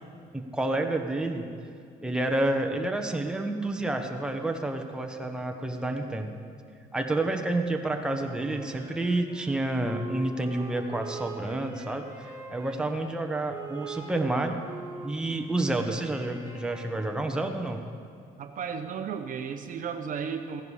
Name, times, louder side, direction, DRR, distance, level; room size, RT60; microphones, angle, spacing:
voice 1, 0.3-1.5 2.0-6.3 6.9-14.6 15.0-17.8, right 2 dB, 5° right, 3 dB, 1.0 m, -29 dB
Wind instrument woodwind instrument, 8.1-12.8 13.5-17.4, right 3 dB, 20° right, 3.2 m, -43 dB
voice 2, 18.4-20.6, right 6 dB, 50° right, 7 dB, 0.8 m, -34 dB
15.5 x 10.5 x 4.9 m, 2.4 s
cardioid pair, 110°, 17 cm